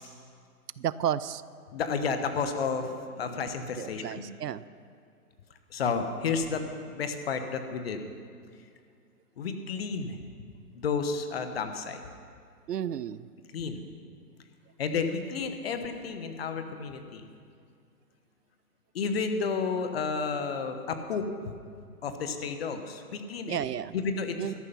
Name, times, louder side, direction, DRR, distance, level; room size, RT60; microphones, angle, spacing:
voice 1, 0.8-1.4 3.8-4.6 8.5-8.6 12.7-13.3 23.5-24.0 24.4-24.5, right 10 dB, 85° right, 17 dB, 0.6 m, -32 dB
voice 2, 1.7-4.3 5.7-8.0 9.4-10.2 10.7-12.0 13.5-13.8 14.8-17.2 18.9-21.5 22.0-23.6 23.9-24.4, left 5 dB, 40° left, 7 dB, 1.1 m, -31 dB
13.0 x 11.0 x 5.8 m, 2.2 s
hypercardioid pair, 150°, 47 cm